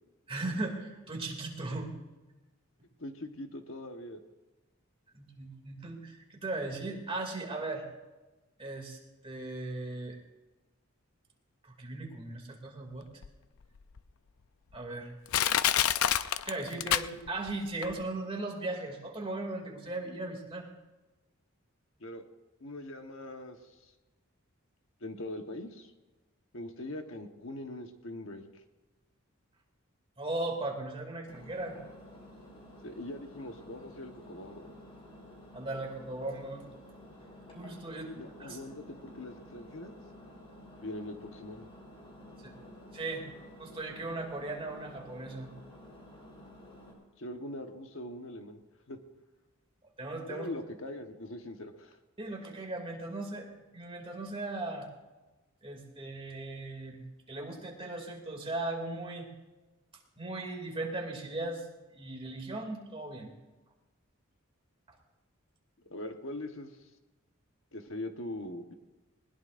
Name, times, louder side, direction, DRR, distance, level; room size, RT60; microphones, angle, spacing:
voice 1, 0.3-1.9 5.1-7.9 8.6-9.0 9.2-10.2 11.6-13.1 14.7-15.1 16.4-20.7 30.2-31.8 35.5-36.6 37.5-38.1 38.4-38.6 42.4-42.6 42.9-43.3 43.6-45.5 50.0-50.5 52.2-54.9 55.6-57.0 57.3-59.3 60.2-61.6 61.9-63.3, right 2 dB, 25° right, 1 dB, 2.6 m, -37 dB
voice 2, 3.0-4.2 22.0-22.2 22.6-23.9 25.0-25.9 26.5-28.4 32.8-34.7 38.1-39.9 40.8-41.7 47.2-48.6 48.9-49.0 50.3-52.0 65.9-66.8 67.7-68.7, left 1 dB, 65° left, 5 dB, 1.3 m, -42 dB
Crushing, 13.2-13.3 14.0-14.1 14.7-14.8 15.3-17.5 17.8-17.9, left 11 dB, 85° left, 0.5 m, -27 dB
Engine, 31.3-46.9, left 1 dB, 25° left, 4.6 m, -52 dB
20.5 x 20.5 x 2.6 m, 1.2 s
head